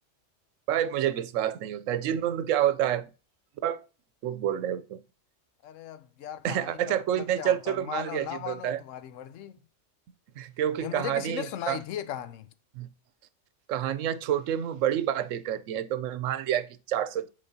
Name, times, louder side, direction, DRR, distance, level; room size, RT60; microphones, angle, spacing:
voice 1, 0.7-3.1 3.6-3.8 4.2-5.0 6.4-8.8 10.4-11.8 12.8-12.9 13.7-17.3, right 10 dB, 85° right, 1.0 m, -28 dB
voice 2, 5.6-9.6 10.8-12.5, left 10 dB, 85° left, 1.0 m, -37 dB
10.0 x 3.8 x 2.7 m
omnidirectional pair, 1.3 m